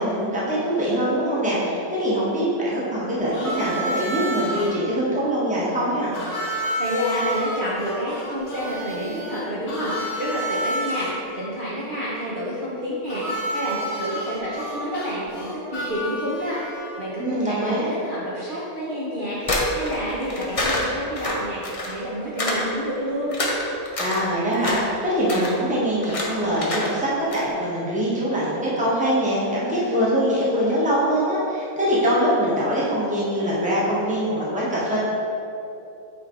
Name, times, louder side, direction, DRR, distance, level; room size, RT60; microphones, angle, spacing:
voice 1, 0.0-6.1 17.2-17.9 24.0-35.0, equal, 5° right, -7 dB, 1.1 m, -23 dB
Harmonica, 3.3-4.7 6.1-11.1 13.1-17.0, right 1 dB, 65° left, 1.5 m, -30 dB
voice 2, 6.8-16.6 17.0-23.3, equal, 40° right, -8 dB, 0.9 m, -29 dB
sound 1, 19.4-22.0 22.4-22.7 23.0-24.2 24.5-24.9 25.2-25.5 26.0-26.3 26.5-26.9 27.2-27.4, left 2 dB, 40° left, 0.5 m, -26 dB
8.4 x 3.2 x 3.8 m, 2.8 s
omnidirectional pair, 1.5 m